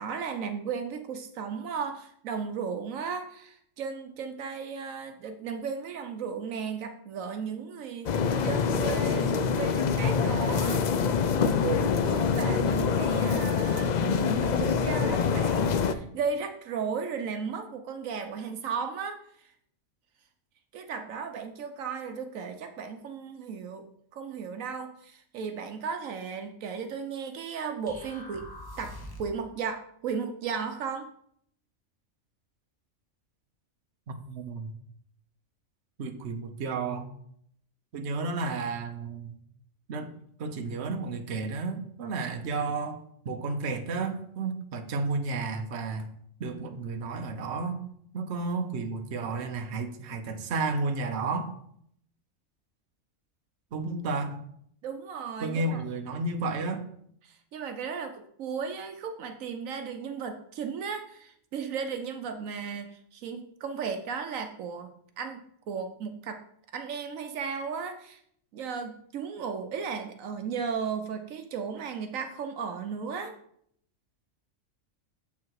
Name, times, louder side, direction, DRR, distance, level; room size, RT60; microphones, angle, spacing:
voice 1, 0.0-8.1 8.4-11.1 11.6-19.5 20.7-23.9 24.1-28.5 28.8-31.1 54.8-55.8 57.2-66.4 66.7-68.2 68.5-73.3, right 6 dB, 80° right, 7 dB, 1.1 m, -35 dB
sound 1, 8.0-15.9, left 6 dB, 80° left, 0.4 m, -25 dB
sound 2, 27.9-29.4, left 1 dB, 15° left, 1.2 m, -43 dB
voice 2, 34.1-34.7 36.0-37.1 37.9-39.4 39.9-40.1 40.4-46.1 46.4-47.8 48.1-51.5 53.7-54.4 55.4-56.9, right 3 dB, 55° right, 6 dB, 1.1 m, -32 dB
7.4 x 5.6 x 4.7 m, 0.67 s
omnidirectional pair, 1.4 m